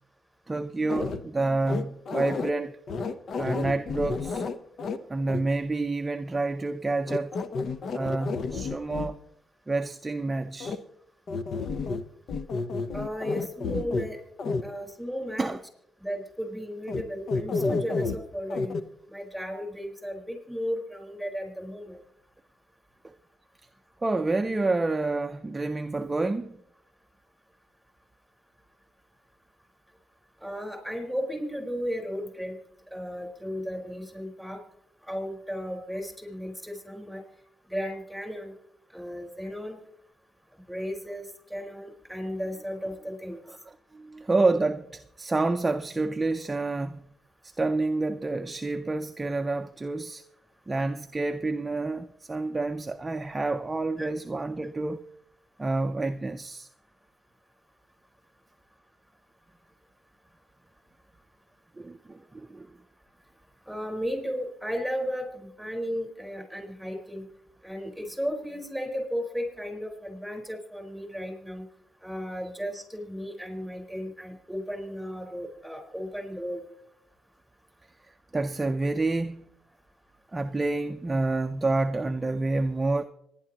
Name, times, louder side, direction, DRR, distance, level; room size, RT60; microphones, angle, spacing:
voice 1, 0.5-2.8 3.4-4.4 5.1-7.4 7.9-9.2 9.7-10.8 15.4-15.6 23.0-23.1 24.0-26.6 43.5-47.1 47.4-50.2 50.7-55.1 55.6-56.7 61.8-62.8 78.0-79.5 80.3-83.0, right 3 dB, 20° right, 0.5 m, -28 dB
sound 1, 0.9-1.2 1.6-2.5 2.9-5.0 5.3-5.4 7.1-9.1 10.6-10.8 11.3-12.0 12.3-14.1 14.4-14.6 16.9-17.0 17.3-18.2 18.5-18.8, left 4 dB, 55° left, 0.8 m, -30 dB
voice 2, 12.9-14.2 14.6-15.6 16.0-18.8 19.1-22.0 30.4-32.6 32.9-34.6 35.1-37.2 37.7-38.5 38.9-39.8 40.7-41.2 41.5-43.4 54.0-54.1 63.7-67.2 67.6-71.6 72.0-76.6, equal, ahead, 4.4 m, -34 dB
26.0 x 10.5 x 3.0 m
cardioid pair, 90°, 0 cm